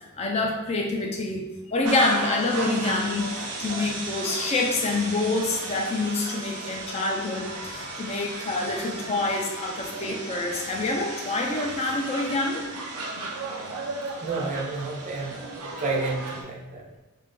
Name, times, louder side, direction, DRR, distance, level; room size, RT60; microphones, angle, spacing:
voice 1, 0.2-12.7, left 2 dB, 30° left, 0 dB, 0.3 m, -27 dB
sound 1, 1.8-16.4, right 3 dB, 90° right, 0.6 m, -35 dB
voice 2, 14.2-15.4 15.8-16.8, right 3 dB, 30° right, -1 dB, 0.4 m, -30 dB
2.9 x 2.5 x 3.5 m, 1.1 s
head